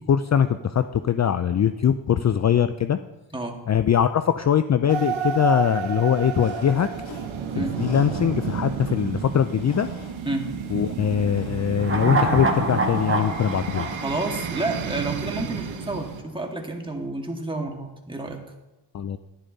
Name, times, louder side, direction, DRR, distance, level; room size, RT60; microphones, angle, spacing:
voice 1, 0.0-3.0 3.7-6.9 7.6-9.9 10.7-13.9 18.9-19.2, left 8 dB, 40° left, 11 dB, 0.4 m, -22 dB
sound 1, 4.9-16.2, right 6 dB, 85° right, 1.0 m, -31 dB
sound 2, 6.3-16.6, left 4 dB, 90° left, 2.0 m, -48 dB
sound 3, 11.8-15.2 15.5-15.6, right 2 dB, 25° right, 1.5 m, -26 dB
voice 2, 13.9-18.4, right 2 dB, 10° right, 1 dB, 1.9 m, -30 dB
11.0 x 10.0 x 4.0 m, 1.1 s
cardioid pair, 75°, 46 cm